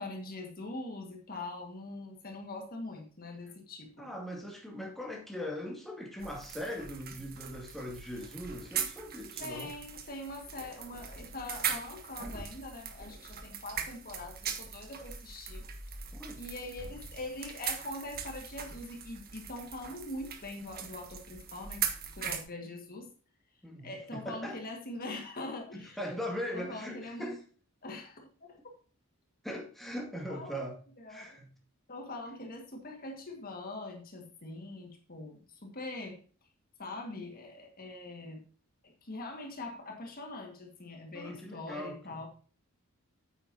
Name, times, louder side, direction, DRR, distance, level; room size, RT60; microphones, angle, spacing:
voice 1, 0.0-4.1 9.4-15.6 16.4-21.8 22.2-23.1 23.8-26.0 26.5-27.4 27.8-28.6 30.3-30.7 31.0-31.4 31.9-36.2 36.8-38.4 38.8-42.3, left 2 dB, 40° left, 1.8 m, -43 dB
voice 2, 4.0-9.7 16.1-16.4 23.6-24.6 25.7-27.4 29.4-30.8 31.1-31.5 41.1-42.2, equal, ahead, 2.3 m, -40 dB
sound 1, 6.2-22.4, right 7 dB, 45° right, 1.5 m, -40 dB
9.2 x 8.9 x 2.8 m
head